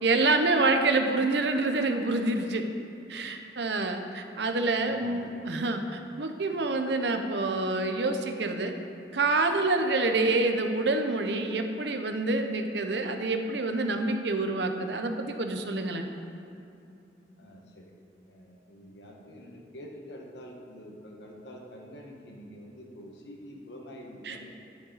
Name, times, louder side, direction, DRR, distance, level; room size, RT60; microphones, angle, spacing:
voice 1, 0.0-2.6 3.1-8.7 9.1-16.1 24.2-24.4, right 2 dB, 75° right, 6 dB, 0.8 m, -27 dB
voice 2, 4.6-5.3 5.8-6.0 17.4-17.9 18.3-24.5, equal, 80° left, 0 dB, 1.5 m, -46 dB
10.5 x 9.7 x 4.1 m, 2.6 s
head